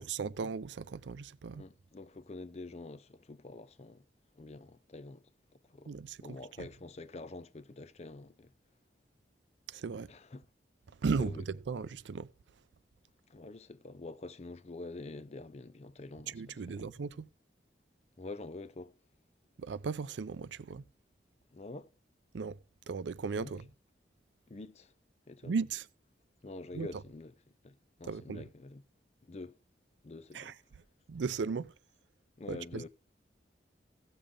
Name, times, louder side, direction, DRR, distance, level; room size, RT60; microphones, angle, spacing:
voice 1, 0.0-1.6 5.9-6.4 9.7-10.1 11.0-12.3 16.3-17.3 19.6-20.8 22.3-22.6 22.9-23.7 25.4-25.9 26.7-26.9 28.0-28.5 30.3-30.5 31.1-31.7 32.5-32.9, right 5 dB, 85° right, 0.4 m, -36 dB
voice 2, 1.5-4.0 4.4-5.2 5.7-5.9 6.2-8.5 10.1-10.4 11.2-11.4 13.3-16.9 18.2-18.9 21.5-21.9 23.4-23.5 24.5-24.9 25.3-25.5 26.4-27.3 27.6-28.8 29.2-29.6 30.0-30.6 32.4-32.9, left 2 dB, 35° left, 0.5 m, -46 dB
15.5 x 6.9 x 3.7 m
head